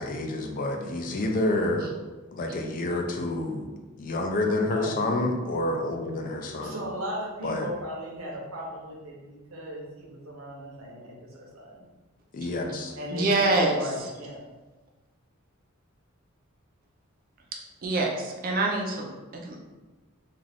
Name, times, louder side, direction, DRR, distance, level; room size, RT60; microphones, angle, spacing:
voice 1, 0.0-1.9 2.3-3.7 4.0-6.8 7.4-7.7 12.3-12.9, left 2 dB, 40° left, 3 dB, 0.4 m, -28 dB
voice 2, 4.7-5.0 6.6-11.8 13.0-14.5, equal, 75° right, -2 dB, 0.7 m, -37 dB
voice 3, 13.1-14.1 17.8-19.6, right 2 dB, 40° right, 0 dB, 0.5 m, -26 dB
2.4 x 2.4 x 3.3 m, 1.2 s
head